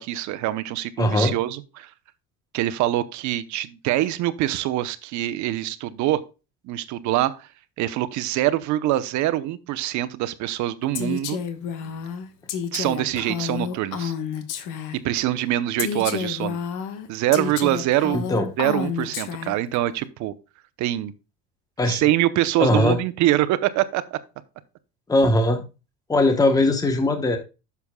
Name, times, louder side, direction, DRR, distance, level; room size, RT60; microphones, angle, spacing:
voice 1, 0.0-1.9 2.5-6.2 6.6-7.5 7.8-11.4 12.7-14.1 15.0-16.6 17.1-18.2 18.6-20.3 20.8-21.1 21.9-24.2, right 14 dB, 65° right, 0.8 m, -24 dB
voice 2, 1.0-1.3 18.1-18.5 21.8-22.0 22.6-23.0 25.1-25.6 26.1-27.4, left 2 dB, 10° left, 1.1 m, -20 dB
Female speech woman speaking, 10.9-15.2 15.8-19.8, left 7 dB, 70° left, 1.3 m, -30 dB
10.5 x 7.0 x 2.3 m
cardioid pair, 125°, 32 cm